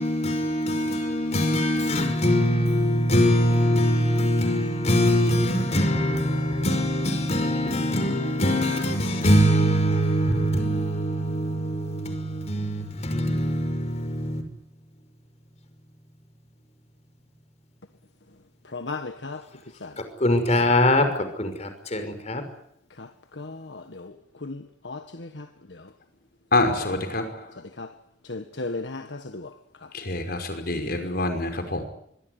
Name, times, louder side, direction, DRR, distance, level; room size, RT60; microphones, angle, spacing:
voice 1, 0.0-14.4 20.2-21.1 21.4-22.4, equal, 40° left, 5.8 m, -23 dB
voice 2, 18.7-19.4 19.8-19.9 23.0-23.1 23.4-24.1 24.4-25.8 26.8-26.9 27.8-27.9 28.3-29.5, left 3 dB, 80° left, 1.6 m, -36 dB
voice 3, 26.5-27.3 29.9-31.8, left 2 dB, 60° left, 5.7 m, -26 dB
25.5 x 22.0 x 9.6 m
head